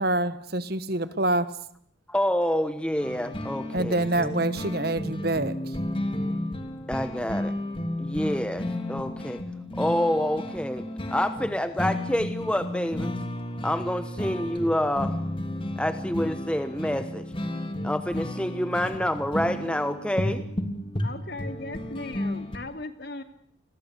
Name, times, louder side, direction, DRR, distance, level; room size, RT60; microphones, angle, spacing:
voice 1, 0.0-1.5 3.7-5.8, right 2 dB, 50° right, 14 dB, 1.5 m, -26 dB
voice 2, 2.1-4.0 6.9-7.5 8.0-9.4 9.8-13.1 13.6-15.2 15.8-17.2 17.8-20.4, equal, 5° left, 9 dB, 1.2 m, -27 dB
sound 1, 3.0-22.6, left 1 dB, 25° left, 3.1 m, -33 dB
voice 3, 21.0-23.2, left 2 dB, 55° left, 9 dB, 2.7 m, -37 dB
29.5 x 22.0 x 8.3 m, 0.63 s
head